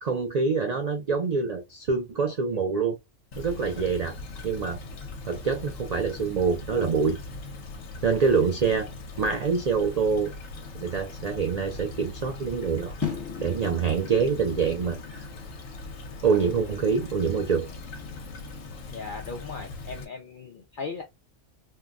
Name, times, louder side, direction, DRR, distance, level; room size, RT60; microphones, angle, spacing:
voice 1, 0.0-3.0 3.4-4.1 4.4-4.8 5.3-7.2 8.0-8.9 9.2-10.3 10.8-12.9 13.4-15.2 16.2-17.7, right 5 dB, 80° right, 0.3 m, -25 dB
Stream / Trickle dribble, 3.3-20.1, left 3 dB, 85° left, 1.1 m, -40 dB
sound 1, 13.0-19.2, left 7 dB, 20° left, 0.7 m, -40 dB
voice 2, 18.9-21.0, left 4 dB, 60° left, 0.5 m, -37 dB
3.7 x 2.2 x 2.4 m
omnidirectional pair, 1.3 m